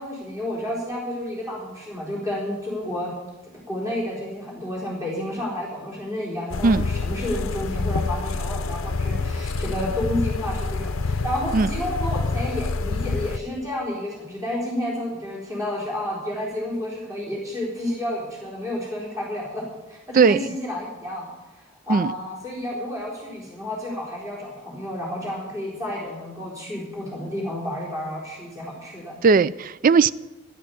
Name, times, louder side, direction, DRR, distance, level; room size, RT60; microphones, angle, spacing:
voice 1, 0.0-3.1 3.4-21.3 21.5-29.1, left 1 dB, 15° right, 3.7 m, -31 dB
sound 1, 6.5-13.4, left 3 dB, 80° left, 0.6 m, -27 dB
voice 2, 29.2-30.1, right 5 dB, 45° right, 0.4 m, -17 dB
13.5 x 11.5 x 6.9 m
head